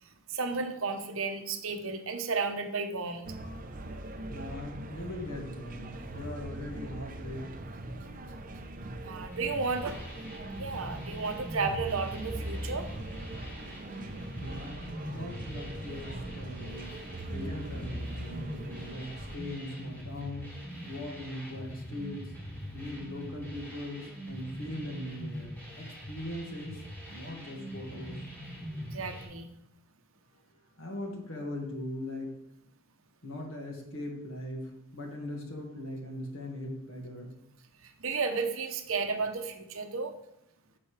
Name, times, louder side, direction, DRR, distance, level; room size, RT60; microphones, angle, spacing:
voice 1, 0.0-3.2 9.0-10.0 10.5-12.9 28.8-29.5 37.8-40.2, right 4 dB, 70° right, 6 dB, 0.9 m, -33 dB
sound 1, 3.2-19.4, right 1 dB, 40° right, 0.7 m, -41 dB
voice 2, 4.3-7.5 14.3-17.0 17.3-20.5 20.8-22.2 22.7-26.8 27.1-28.2 30.8-32.4 33.2-37.3, left 1 dB, 65° left, 0 dB, 2.0 m, -40 dB
sound 2, 9.3-29.2, equal, 10° left, 2.4 m, -43 dB
10.5 x 6.9 x 3.3 m, 0.80 s
head